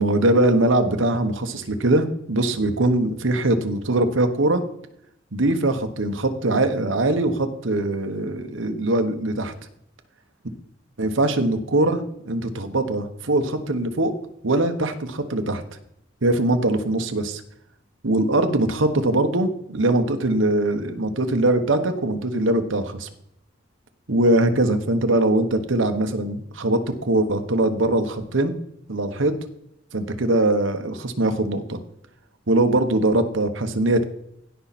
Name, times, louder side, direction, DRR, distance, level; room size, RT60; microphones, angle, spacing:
voice 1, 0.0-4.6 5.3-9.5 11.0-14.1 14.4-15.6 16.2-17.4 18.0-23.1 24.1-28.5 28.9-29.3 29.9-31.8 32.5-34.0, right 2 dB, 80° right, 7 dB, 1.2 m, -22 dB
16.5 x 5.6 x 4.2 m, 0.73 s
head